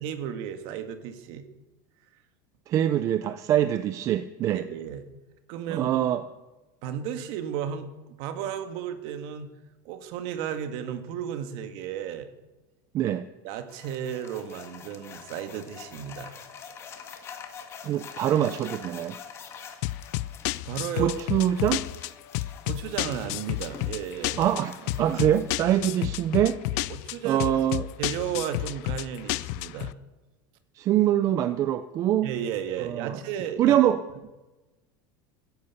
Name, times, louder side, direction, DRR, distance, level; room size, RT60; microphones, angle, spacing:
voice 1, 0.0-1.5 4.5-5.0 5.5-5.9 6.8-9.5 9.9-12.3 13.4-16.4 20.7-21.1 22.7-24.4 24.9-25.0 26.9-27.6 28.0-29.9 32.2-33.8, right 9 dB, 50° right, 8 dB, 1.8 m, -34 dB
voice 2, 2.7-4.6 5.7-6.2 12.9-13.2 17.8-19.2 21.0-21.8 24.4-26.6 27.2-27.9 30.8-32.3 32.8-33.2 33.6-34.0, right 11 dB, 30° right, 11 dB, 0.6 m, -24 dB
sound 1, 13.7-25.6, left 7 dB, 25° left, 1.7 m, -46 dB
sound 2, 19.8-29.9, left 18 dB, 50° left, 0.5 m, -31 dB
15.0 x 10.5 x 8.1 m, 1.1 s
supercardioid pair, 175°, 11 cm